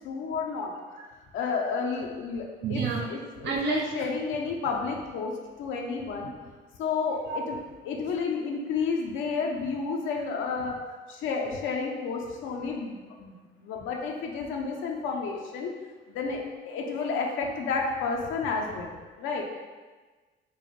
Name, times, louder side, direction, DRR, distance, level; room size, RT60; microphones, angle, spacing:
voice 1, 0.0-0.7 1.3-5.3 5.6-6.3 6.8-7.6 7.9-10.8 11.1-15.7 16.1-16.4 16.7-19.4, left 5 dB, 85° left, 0 dB, 0.5 m, -31 dB
voice 2, 2.6-3.1 3.4-3.9 6.2-6.3 7.3-7.4 12.9-13.0, right 4 dB, 65° right, 0 dB, 0.4 m, -29 dB
4.5 x 2.1 x 2.9 m, 1.3 s
cardioid pair, 90°, 20 cm